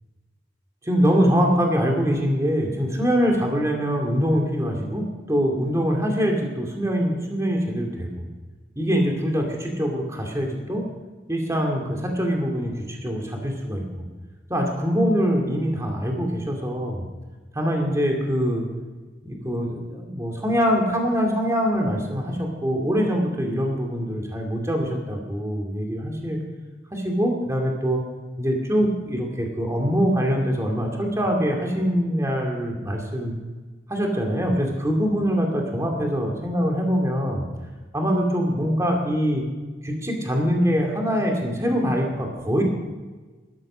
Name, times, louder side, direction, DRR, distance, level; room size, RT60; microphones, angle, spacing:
voice 1, 0.8-8.2 8.8-10.9 11.3-13.8 14.5-17.0 17.5-18.7 19.2-26.4 26.9-28.0 28.4-33.3 33.9-37.5 37.9-39.4 39.8-42.6, equal, 15° right, 0 dB, 2.5 m, -23 dB
15.0 x 13.0 x 6.3 m, 1.3 s
head